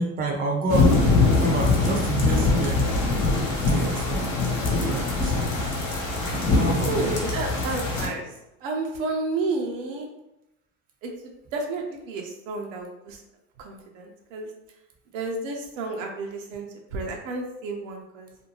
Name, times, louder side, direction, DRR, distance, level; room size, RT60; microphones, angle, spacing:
voice 1, 0.0-2.8 3.6-4.4 4.8-5.7 6.5-7.2, right 2 dB, 20° right, 1 dB, 0.6 m, -28 dB
sound 1, 0.7-8.1, left 3 dB, 45° left, 0.9 m, -23 dB
voice 2, 6.9-8.3 8.6-10.1 11.0-11.1 11.5-13.2 13.6-14.5 15.1-16.7 16.9-18.3, right 3 dB, 75° right, 2 dB, 0.7 m, -31 dB
2.6 x 2.2 x 2.9 m, 0.91 s
hypercardioid pair, 90°, 40 cm